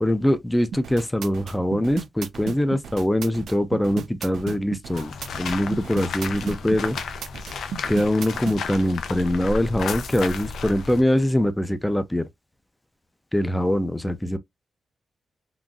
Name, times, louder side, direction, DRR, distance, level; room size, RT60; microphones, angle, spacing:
voice 1, 0.0-5.1 5.4-7.0 7.9-12.3 13.3-14.4, left 1 dB, 5° left, 0.4 m, -23 dB
sound 1, 0.7-8.6, right 7 dB, 75° right, 0.5 m, -34 dB
sound 2, 4.9-11.0, left 4 dB, 90° left, 0.5 m, -33 dB
3.8 x 2.5 x 2.3 m
wide cardioid pair, 165°, 0 cm